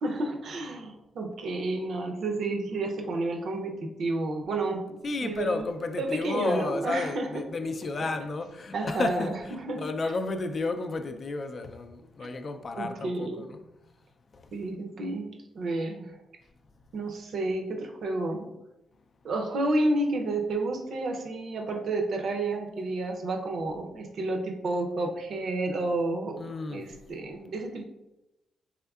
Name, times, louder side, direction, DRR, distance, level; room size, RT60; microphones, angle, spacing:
voice 1, 0.0-5.0 5.2-5.7 6.0-7.3 8.7-9.9 12.8-13.5 14.5-15.3 15.5-16.1 16.9-18.5 19.2-26.4 26.7-27.8, right 2 dB, 65° right, 0.6 m, -30 dB
voice 2, 5.0-13.6 26.4-26.9, left 3 dB, 45° left, 0.3 m, -32 dB
3.6 x 3.3 x 2.3 m
cardioid pair, 80°, 0 cm